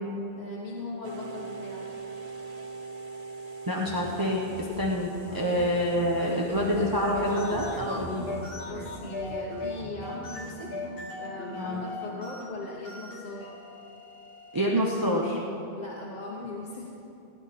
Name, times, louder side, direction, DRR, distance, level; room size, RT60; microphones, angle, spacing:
voice 1, 0.4-1.9 5.0-5.7 6.1-7.1 8.6-10.8 11.2-13.5 15.7-16.9, left 2 dB, 40° left, -4 dB, 1.3 m, -39 dB
sound 1, 1.0-8.5, right 4 dB, 45° right, 0.7 m, -42 dB
voice 2, 3.7-8.3 11.6-11.8 14.5-15.4, equal, 20° right, -3 dB, 1.0 m, -27 dB
sound 2, 3.8-10.2, right 2 dB, 75° right, 2.1 m, -44 dB
sound 3, 6.9-15.2, left 2 dB, 65° left, 1.6 m, -39 dB
17.0 x 11.0 x 4.3 m, 3.0 s
omnidirectional pair, 1.1 m